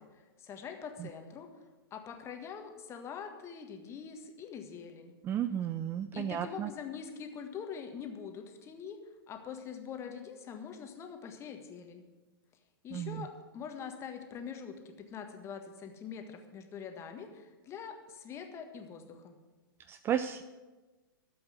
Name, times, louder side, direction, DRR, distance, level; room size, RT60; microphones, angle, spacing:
voice 1, 0.0-1.5 1.9-5.1 6.1-9.0 9.3-12.0 12.8-19.4, left 7 dB, 20° left, 5 dB, 1.6 m, -44 dB
voice 2, 5.2-6.7 12.9-13.3 19.9-20.4, right 10 dB, 20° right, 11 dB, 0.4 m, -33 dB
12.5 x 7.9 x 7.9 m, 1.2 s
figure-of-eight pair, 105°, 12 cm